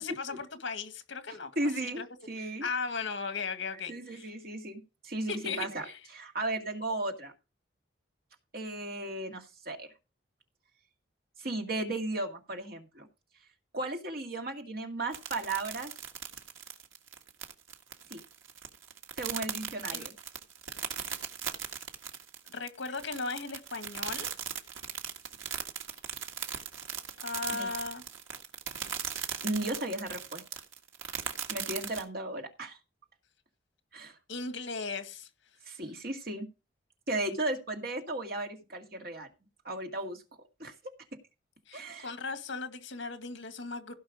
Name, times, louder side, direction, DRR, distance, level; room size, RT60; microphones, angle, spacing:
voice 1, 0.0-1.5 1.8-2.1 2.4-4.3 5.3-6.0 19.9-20.1 22.5-24.3 27.2-28.0 34.3-35.3 41.7-43.9, left 4 dB, 75° left, 1.9 m, -37 dB
voice 2, 1.3-2.7 3.9-5.9 6.1-7.3 8.5-9.9 11.4-13.1 13.7-15.9 18.1-18.2 19.2-20.1 27.5-27.7 29.4-30.6 31.5-32.8 33.9-34.1 35.7-36.5 37.1-39.3 39.6-40.2 40.6-40.7 41.7-42.1, right 2 dB, 50° right, 2.0 m, -35 dB
sound 1, 15.1-32.0, right 8 dB, 85° right, 1.7 m, -38 dB
16.5 x 5.6 x 5.0 m
head